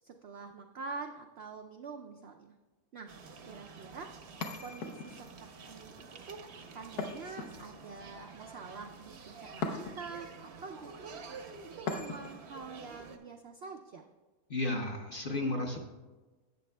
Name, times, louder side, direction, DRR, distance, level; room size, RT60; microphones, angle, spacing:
voice 1, 0.0-2.5 2.9-3.1 3.5-4.1 4.6-11.1 11.8-14.1, right 4 dB, 85° right, 4 dB, 0.5 m, -46 dB
sound 1, 3.1-13.2, right 4 dB, 55° right, 0.8 m, -50 dB
sound 2, 4.4-5.4 7.0-8.0 9.6-10.2 11.9-12.5, left 4 dB, 75° left, 1.3 m, -39 dB
voice 2, 14.5-15.8, left 2 dB, 45° left, 2 dB, 0.7 m, -33 dB
12.0 x 8.3 x 2.2 m, 1.2 s
omnidirectional pair, 1.7 m